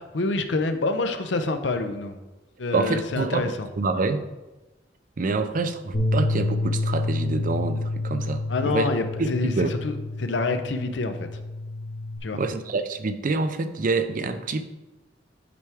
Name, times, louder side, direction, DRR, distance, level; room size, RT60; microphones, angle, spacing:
voice 1, 0.1-2.2 2.6-3.7 8.5-11.4 12.2-12.4, left 3 dB, 75° left, 8 dB, 0.6 m, -27 dB
voice 2, 2.7-3.5 3.8-4.3 5.2-8.9 9.2-9.7 12.3-14.6, right 3 dB, 50° right, 9 dB, 0.5 m, -26 dB
Bass guitar, 5.9-12.2, left 2 dB, 55° left, 1.5 m, -28 dB
8.4 x 4.6 x 3.5 m, 1.1 s
head